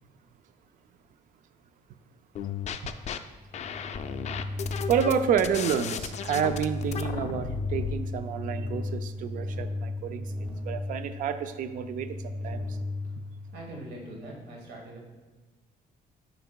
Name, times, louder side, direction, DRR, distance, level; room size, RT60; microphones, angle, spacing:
sound 1, 2.3-3.2 3.5-7.9, left 8 dB, 45° left, 0.4 m, -35 dB
sound 2, 3.3-14.0, left 2 dB, 25° right, 1.2 m, -36 dB
voice 1, 4.9-10.3 10.7-12.6, right 8 dB, 55° right, 10 dB, 0.4 m, -29 dB
voice 2, 13.5-15.0, right 1 dB, 80° right, -1 dB, 1.3 m, -42 dB
12.0 x 5.3 x 2.2 m, 1.3 s
cardioid pair, 165°, 17 cm